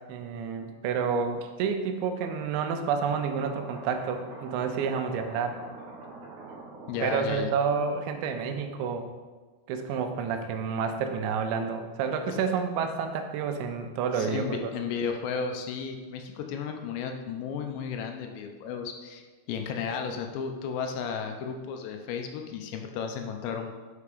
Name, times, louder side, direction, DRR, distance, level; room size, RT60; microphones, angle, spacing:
voice 1, 0.1-5.6 7.0-9.1 9.7-14.7, right 6 dB, 90° right, 7 dB, 3.1 m, -29 dB
sound 1, 3.2-9.0, right 3 dB, 70° right, 1.9 m, -45 dB
voice 2, 6.9-7.5 12.3-12.4 14.1-23.7, left 6 dB, 80° left, 4 dB, 2.8 m, -34 dB
6.9 x 5.7 x 4.9 m, 1.3 s
omnidirectional pair, 5.2 m